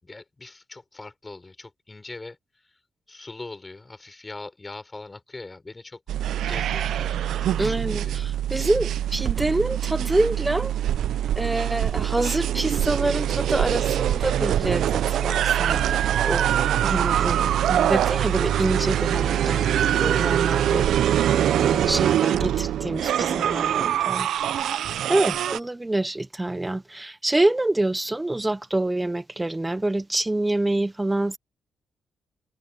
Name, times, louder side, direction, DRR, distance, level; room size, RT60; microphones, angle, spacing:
voice 1, 0.0-2.4 3.1-6.0 6.5-8.2, left 3 dB, 20° left, 5.2 m, -41 dB
sound 1, 6.1-25.6, right 11 dB, 85° right, 0.6 m, -23 dB
voice 2, 7.6-10.7 11.4-16.5 16.8-20.9 21.3-24.3 24.6-24.7 25.1-31.4, right 2 dB, 10° right, 0.7 m, -26 dB
sound 2, 15.9-23.4 23.8-24.1, left 6 dB, 40° left, 7.4 m, -55 dB
cardioid pair, 145°, 0 cm